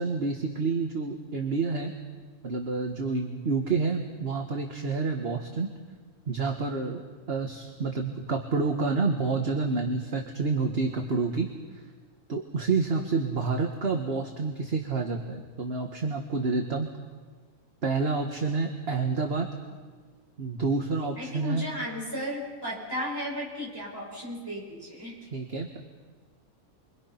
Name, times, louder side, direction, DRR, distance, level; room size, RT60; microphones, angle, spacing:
voice 1, 0.0-1.9 2.4-5.7 6.3-7.0 7.3-11.5 12.3-16.9 17.8-19.5 20.4-21.6 25.3-25.8, right 4 dB, 40° right, 3 dB, 1.7 m, -28 dB
voice 2, 21.2-25.2, equal, 15° right, -4 dB, 6.9 m, -35 dB
29.5 x 23.5 x 5.8 m, 1.5 s
omnidirectional pair, 1.6 m